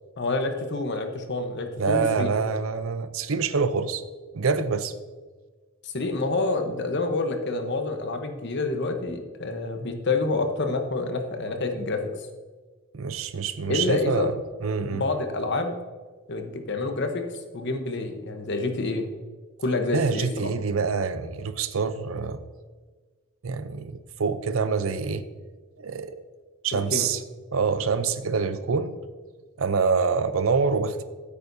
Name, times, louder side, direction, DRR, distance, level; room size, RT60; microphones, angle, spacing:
voice 1, 0.2-2.3 5.8-12.0 13.7-14.3 14.9-15.7 16.3-17.2 17.5-19.1 19.6-20.3 26.7-27.1, left 3 dB, 55° left, 6 dB, 1.0 m, -28 dB
voice 2, 1.8-4.0 4.3-4.9 12.9-14.3 14.6-15.0 19.9-22.4 23.4-25.2 25.8-26.2 26.6-27.2 27.5-29.0 29.6-31.0, right 5 dB, 75° right, 12 dB, 0.6 m, -26 dB
14.5 x 8.5 x 2.7 m, 1.4 s
head